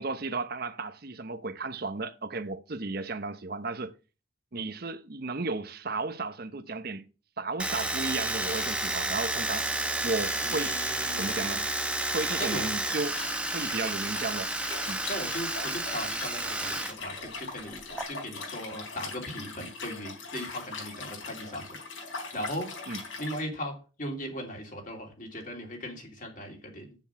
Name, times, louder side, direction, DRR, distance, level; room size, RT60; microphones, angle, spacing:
voice 1, 0.0-3.9 4.5-7.0 7.4-9.7 10.0-10.8 11.2-11.7 12.1-13.2 13.5-14.5 14.9-15.0 22.9-23.0, right 3 dB, 50° right, 0.9 m, -34 dB
Domestic sounds home sounds, 7.6-16.9 17.2-18.0, right 2 dB, 5° right, 0.8 m, -31 dB
voice 2, 10.4-11.6 12.4-12.7 15.0-21.8 22.3-22.7 23.0-27.0, equal, 40° left, 2.9 m, -38 dB
Liquid, 12.9-23.4, left 4 dB, 75° left, 3.9 m, -41 dB
7.7 x 7.1 x 5.7 m
head